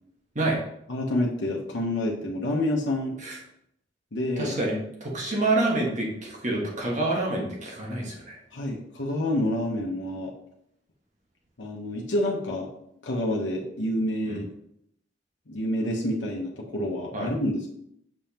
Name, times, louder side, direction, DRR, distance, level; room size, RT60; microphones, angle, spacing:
voice 1, 0.9-3.2 4.1-4.6 8.5-10.3 11.6-12.7 13.0-14.5 15.5-17.7, left 1 dB, 80° left, -1 dB, 0.9 m, -28 dB
voice 2, 4.4-8.4 14.3-14.4 17.1-17.3, right 2 dB, 40° right, -2 dB, 1.5 m, -27 dB
6.2 x 5.3 x 2.9 m, 0.75 s
head